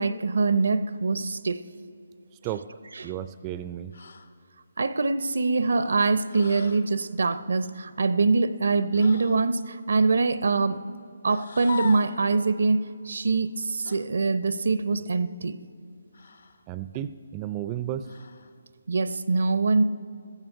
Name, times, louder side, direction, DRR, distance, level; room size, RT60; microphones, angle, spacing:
voice 1, 0.0-1.6 3.0-3.1 4.8-10.8 11.2-12.8 13.0-15.6 18.9-19.8, right 3 dB, 70° right, 14 dB, 0.6 m, -24 dB
voice 2, 3.0-3.9 16.7-18.1, right 11 dB, 20° right, 12 dB, 0.3 m, -33 dB
sound 1, 3.9-4.3 6.3-6.9 8.9-9.5 11.2-12.2 13.8-14.1 16.1-16.6 18.0-18.5, left 5 dB, 70° left, 0.8 m, -39 dB
15.5 x 14.0 x 4.5 m, 2.5 s
figure-of-eight pair, 155°, 0 cm